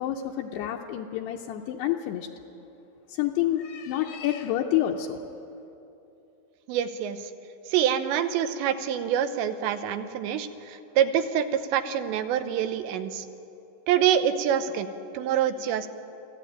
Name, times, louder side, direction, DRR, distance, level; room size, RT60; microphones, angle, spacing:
voice 1, 0.0-2.3 3.1-5.2, left 12 dB, 80° left, 1 dB, 2.7 m, -28 dB
voice 2, 6.7-7.3 7.7-13.3 13.9-14.9 15.1-15.9, right 9 dB, 80° right, 10 dB, 3.1 m, -26 dB
25.0 x 16.0 x 9.0 m, 2.9 s
omnidirectional pair, 5.2 m